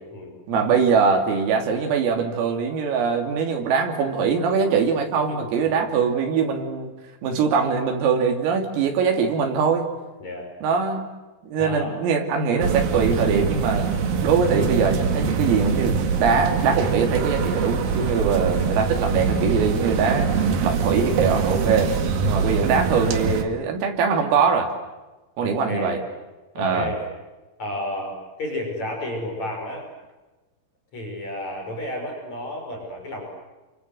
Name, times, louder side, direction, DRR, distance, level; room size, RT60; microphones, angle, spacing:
voice 1, 0.5-6.9 7.2-9.9 10.6-11.1 11.4-13.9 14.2-20.3 20.6-21.9 22.3-24.7 25.4-26.0 26.6-26.9, right 5 dB, 90° right, 3 dB, 5.7 m, -22 dB
voice 2, 5.2-5.9 10.2-10.5 11.6-11.9 18.4-18.6 22.5-22.7 25.4-26.0 26.5-27.0 27.6-29.9 30.9-33.2, left 1 dB, 35° left, 1 dB, 6.8 m, -32 dB
sound 1, 12.6-23.4, right 5 dB, 55° right, 3.2 m, -23 dB
29.5 x 25.0 x 7.9 m, 1.1 s
omnidirectional pair, 5.8 m